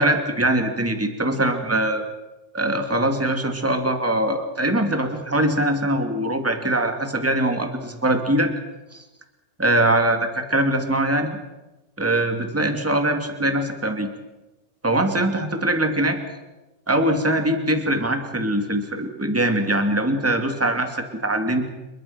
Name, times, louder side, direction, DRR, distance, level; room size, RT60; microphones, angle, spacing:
voice 1, 0.0-2.0 2.5-8.5 8.9-9.0 9.6-11.3 12.0-14.1 14.8-16.2 16.9-21.7, right 1 dB, 5° right, 5 dB, 1.8 m, -22 dB
28.5 x 23.0 x 6.0 m, 1.1 s
omnidirectional pair, 4.4 m